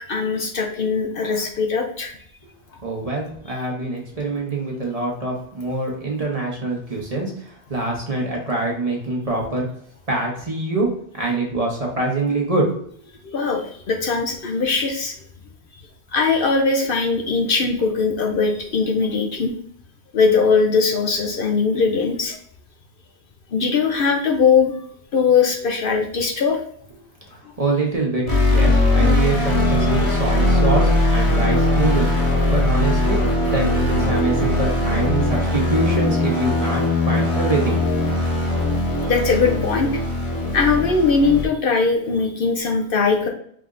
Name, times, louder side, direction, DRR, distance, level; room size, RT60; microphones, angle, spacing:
voice 1, 0.1-2.1 13.3-15.1 16.1-19.5 20.1-22.3 23.5-24.7 25.1-26.6 39.0-39.9 40.5-43.3, left 5 dB, 60° left, 2 dB, 0.8 m, -20 dB
voice 2, 2.8-9.7 10.1-10.9 11.1-12.6 27.6-33.2 33.5-37.9, right 2 dB, 35° right, -1 dB, 1.1 m, -24 dB
sound 1, 28.3-41.5, left 2 dB, 30° left, 1.2 m, -20 dB
4.7 x 3.4 x 2.5 m, 0.65 s
omnidirectional pair, 1.1 m